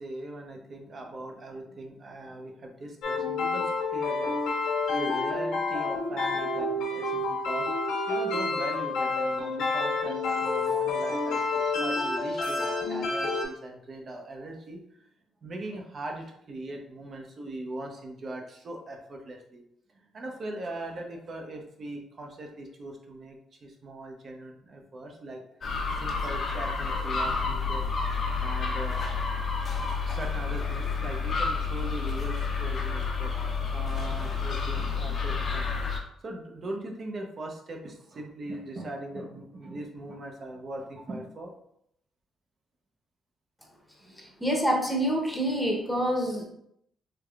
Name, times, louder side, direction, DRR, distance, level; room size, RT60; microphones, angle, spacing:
voice 1, 0.0-4.3 4.9-7.7 8.1-15.1 15.4-19.6 19.9-25.4 25.9-27.8 28.4-29.0 29.8-33.3 33.7-41.5 44.0-44.4, right 1 dB, 50° right, 2 dB, 0.7 m, -40 dB
sound 1, 3.0-13.4, left 3 dB, 85° left, 1.1 m, -29 dB
sound 2, 25.6-36.0, left 4 dB, 45° left, 0.6 m, -30 dB
voice 2, 44.1-46.4, equal, 5° left, 0 dB, 0.8 m, -27 dB
3.4 x 3.2 x 2.3 m, 0.74 s
cardioid pair, 90°, 0 cm